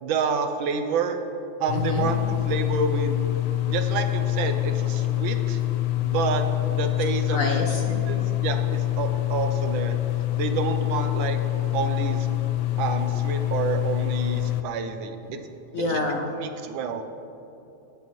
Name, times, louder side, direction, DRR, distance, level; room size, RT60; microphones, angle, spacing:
voice 1, 0.0-1.2 1.6-3.4 3.7-5.6 6.0-7.4 8.1-10.0 10.4-11.4 11.7-12.3 12.8-15.4 15.9-16.1 16.4-17.0, right 5 dB, 85° right, 7 dB, 1.5 m, -29 dB
sound 1, 1.7-14.6, left 15 dB, 90° left, 1.4 m, -26 dB
voice 2, 1.7-2.1 7.3-8.0 15.7-16.3, left 2 dB, 60° left, 2 dB, 0.9 m, -27 dB
17.5 x 7.1 x 3.1 m, 2.9 s
omnidirectional pair, 2.1 m